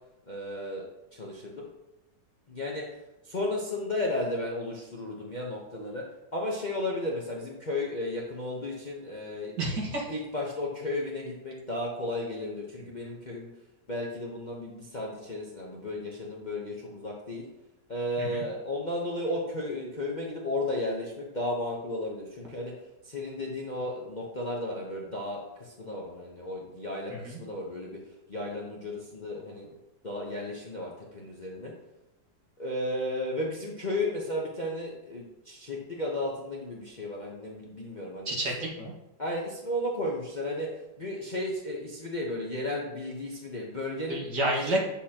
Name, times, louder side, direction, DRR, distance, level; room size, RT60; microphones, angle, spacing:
voice 1, 0.3-0.8 1.2-1.6 2.5-2.8 3.3-6.0 6.3-9.5 10.1-13.5 13.9-17.4 17.9-22.7 23.1-25.4 25.8-27.1 27.4-28.0 28.3-29.7 30.0-31.7 32.6-38.3 39.2-40.7 41.0-44.2, left 1 dB, 35° left, -2 dB, 0.8 m, -34 dB
voice 2, 9.6-10.1 12.8-12.9 18.2-18.4 27.1-27.4 38.3-38.9 44.1-44.8, right 1 dB, 65° right, -3 dB, 2.3 m, -30 dB
8.4 x 7.2 x 2.9 m, 0.96 s
omnidirectional pair, 2.0 m